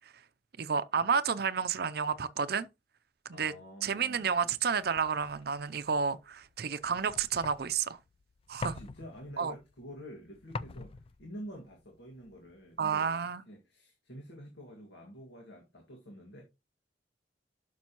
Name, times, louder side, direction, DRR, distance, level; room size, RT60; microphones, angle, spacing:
voice 1, 0.6-2.7 3.3-3.5 3.8-8.0 8.5-8.8 9.4-9.5 12.8-13.4, right 6 dB, 55° right, 0.5 m, -30 dB
voice 2, 3.3-4.6 8.6-16.4, equal, 70° left, 2.0 m, -48 dB
sound 1, 4.1-13.0, left 3 dB, 30° left, 0.3 m, -46 dB
11.5 x 6.1 x 3.0 m
head